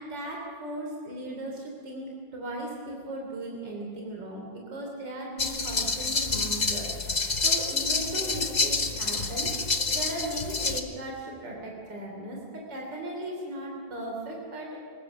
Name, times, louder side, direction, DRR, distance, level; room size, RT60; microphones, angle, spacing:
voice 1, 0.0-9.5 9.9-14.7, right 1 dB, 60° right, -1 dB, 4.0 m, -37 dB
sound 1, 5.4-10.8, left 3 dB, 30° left, 0.9 m, -28 dB
23.5 x 20.0 x 6.2 m, 2.3 s
omnidirectional pair, 2.2 m